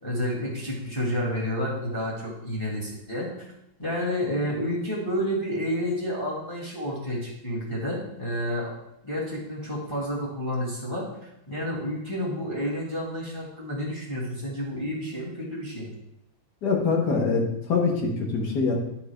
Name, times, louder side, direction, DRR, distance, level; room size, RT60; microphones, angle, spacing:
voice 1, 0.0-3.3 3.8-8.7 9.0-15.9, equal, 15° left, -4 dB, 1.6 m, -30 dB
voice 2, 16.6-18.7, left 4 dB, 80° left, 1 dB, 1.9 m, -24 dB
10.5 x 4.7 x 3.4 m, 0.83 s
omnidirectional pair, 1.8 m